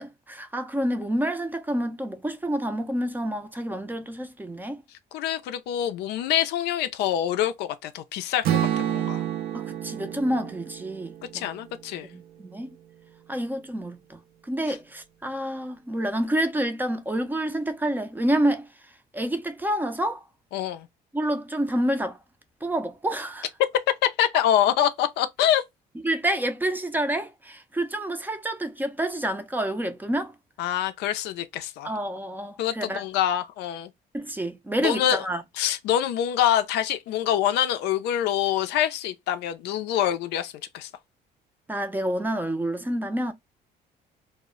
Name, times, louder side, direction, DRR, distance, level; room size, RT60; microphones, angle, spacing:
voice 1, 0.0-4.8 9.5-11.5 12.1-12.7 13.3-18.7 19.1-20.2 21.1-22.2 22.6-23.5 26.0-30.3 31.8-33.0 34.1-35.4 41.7-43.3, right 1 dB, 10° right, 0.4 m, -28 dB
voice 2, 5.1-9.2 11.3-12.1 20.5-20.9 24.2-25.6 30.6-31.9 32.6-33.9 34.8-35.2 35.6-40.9, left 11 dB, 80° left, 0.4 m, -25 dB
Strum, 8.4-12.6, right 11 dB, 70° right, 0.5 m, -30 dB
2.0 x 2.0 x 3.6 m
cardioid pair, 110°, 17 cm